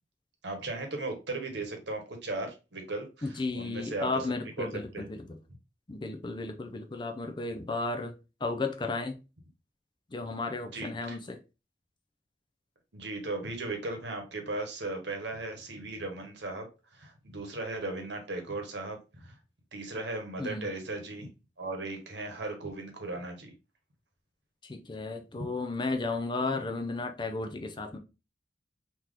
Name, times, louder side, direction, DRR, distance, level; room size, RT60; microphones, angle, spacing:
voice 1, 0.4-4.3 4.6-4.7 4.9-5.0 10.7-11.2 12.9-16.7 16.9-19.3 19.7-21.3 21.6-23.5 25.3-25.5, right 2 dB, 70° right, 1.1 m, -37 dB
voice 2, 3.2-5.4 5.9-8.1 8.4-9.2 10.1-11.4 20.4-20.7 24.6-28.0, left 3 dB, 25° left, 0.5 m, -34 dB
3.6 x 3.0 x 3.3 m
head